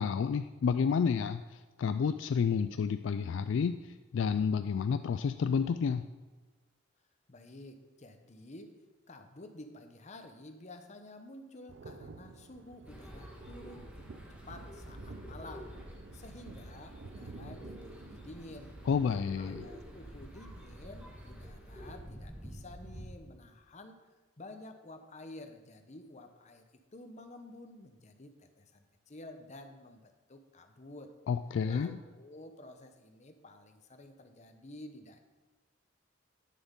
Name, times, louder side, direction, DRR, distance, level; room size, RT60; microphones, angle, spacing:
voice 1, 0.0-1.4 1.8-3.7 4.1-6.1 18.9-19.7 31.3-32.0, left 6 dB, 65° left, 10 dB, 0.3 m, -30 dB
voice 2, 7.3-8.7 9.1-14.1 14.5-15.7 16.1-18.7 19.4-24.0 24.4-31.1 31.6-35.2, left 1 dB, 35° left, 6 dB, 0.9 m, -51 dB
sound 1, 11.7-21.6, right 4 dB, 65° right, 0.5 m, -52 dB
sound 2, 12.8-23.2, equal, 5° right, 1.4 m, -48 dB
9.5 x 7.0 x 5.4 m, 1.3 s
head